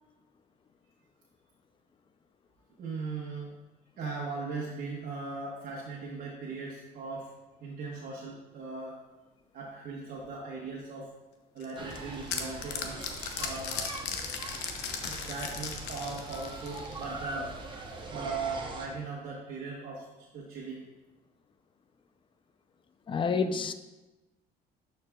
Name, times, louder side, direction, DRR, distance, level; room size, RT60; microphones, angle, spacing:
voice 1, 2.8-3.5 4.0-7.3 7.6-9.0 9.5-11.1 11.5-13.0 13.4-13.9 15.1-17.5 18.1-20.8, right 4 dB, 60° right, -5 dB, 1.2 m, -38 dB
sound 1, 11.6-17.1, left 6 dB, 85° left, 0.7 m, -37 dB
sound 2, 11.8-18.9, right 2 dB, 30° right, 0.9 m, -42 dB
voice 2, 23.1-23.7, left 5 dB, 30° left, 10 dB, 0.5 m, -28 dB
11.0 x 4.7 x 2.3 m, 1.0 s
cardioid pair, 110°, 17 cm